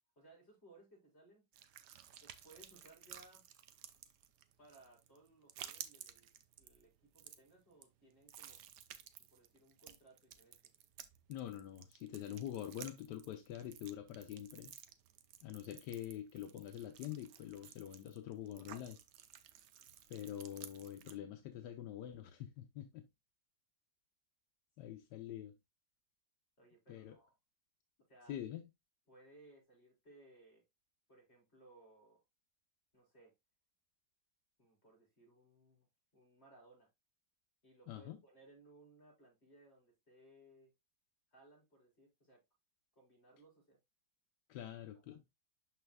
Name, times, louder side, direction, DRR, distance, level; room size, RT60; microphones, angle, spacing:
voice 1, 0.2-1.5 2.2-3.4 4.6-6.3 6.6-8.6 9.3-10.6 24.8-25.0 26.6-27.3 28.1-28.4 29.1-30.6 31.1-32.2 32.9-33.3 34.6-35.9 36.1-36.9 37.6-40.7 41.3-42.4 43.0-43.8 44.5-44.7 45.0-45.2, right 2 dB, 35° left, 4.3 m, -63 dB
sound 1, 1.5-21.2, right 10 dB, 80° right, 1.3 m, -55 dB
voice 2, 11.3-14.7 15.4-19.0 20.1-23.1 24.8-25.6 26.9-27.2 28.3-28.7 37.9-38.2 44.5-45.2, left 11 dB, 80° left, 1.2 m, -45 dB
11.5 x 4.1 x 2.2 m
omnidirectional pair, 1.9 m